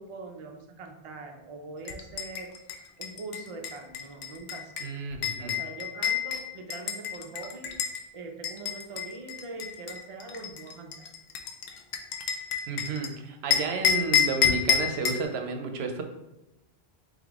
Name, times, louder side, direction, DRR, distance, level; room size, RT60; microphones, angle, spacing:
voice 1, 0.0-2.5 3.0-4.7 5.4-7.7 8.1-11.1, right 3 dB, 45° right, 3 dB, 0.5 m, -42 dB
sound 1, 1.9-8.0 8.4-13.1 13.5-15.2, left 8 dB, 85° left, 0.8 m, -29 dB
voice 2, 4.8-5.6 12.7-16.0, right 4 dB, 80° right, 5 dB, 0.8 m, -32 dB
3.5 x 3.5 x 3.5 m, 0.96 s
omnidirectional pair, 1.1 m